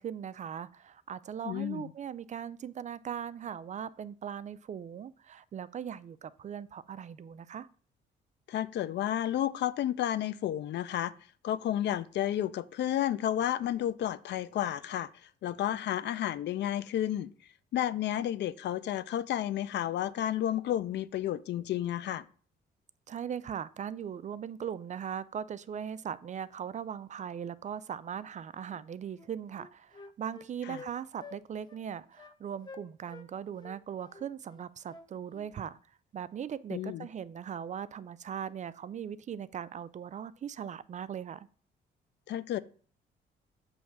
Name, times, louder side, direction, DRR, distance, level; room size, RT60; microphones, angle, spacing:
voice 1, 0.0-7.7 23.1-35.8 36.1-41.5, right 8 dB, 40° right, 0.4 m, -39 dB
voice 2, 1.4-1.9 8.5-11.1 11.4-15.1 15.4-17.3 17.7-22.3 30.7-30.8 36.7-37.1 42.3-42.6, left 11 dB, 65° left, 0.5 m, -31 dB
Wind instrument woodwind instrument, 28.7-28.8 29.1-30.9 31.2-31.4 31.7-31.8 32.2-32.4 32.6-33.3 33.6-35.5, left 4 dB, 25° left, 0.6 m, -50 dB
7.1 x 3.2 x 5.9 m
cardioid pair, 100°, 19 cm